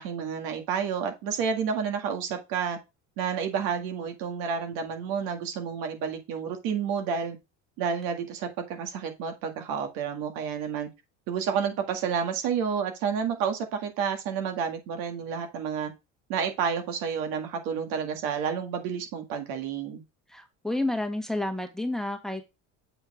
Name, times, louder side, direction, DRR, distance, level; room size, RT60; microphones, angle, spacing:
voice 1, 0.0-2.8 3.2-7.4 7.8-10.9 11.3-15.9 16.3-20.0, right 7 dB, 75° right, 1.9 m, -30 dB
voice 2, 20.3-22.4, left 1 dB, ahead, 1.6 m, -30 dB
7.9 x 4.3 x 4.9 m
supercardioid pair, 95°, 35 cm